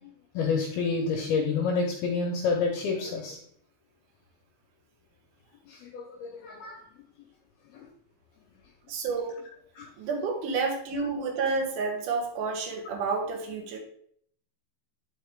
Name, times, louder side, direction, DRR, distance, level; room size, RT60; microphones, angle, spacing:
voice 1, 0.3-3.4 5.7-6.8 7.7-7.9 9.8-9.9, left 4 dB, 80° left, 1 dB, 2.3 m, -29 dB
voice 2, 8.9-9.3 10.0-13.8, right 4 dB, 65° right, 2 dB, 2.1 m, -30 dB
11.0 x 4.7 x 3.6 m, 0.64 s
omnidirectional pair, 5.5 m